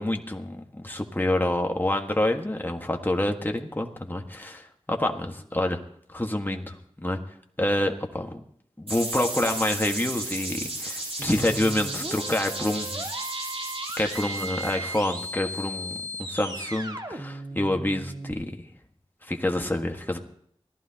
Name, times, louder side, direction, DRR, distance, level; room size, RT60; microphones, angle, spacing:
voice 1, 0.0-5.8 6.1-7.2 7.6-8.3 8.8-13.1 14.0-18.5 19.3-20.2, left 1 dB, 20° left, 3 dB, 1.6 m, -27 dB
sound 1, 8.9-15.6, right 1 dB, 70° right, 6.4 m, -34 dB
sound 2, 11.2-18.3, right 1 dB, 40° right, 1.9 m, -37 dB
24.0 x 15.5 x 2.9 m, 0.66 s
wide cardioid pair, 50°, 11 cm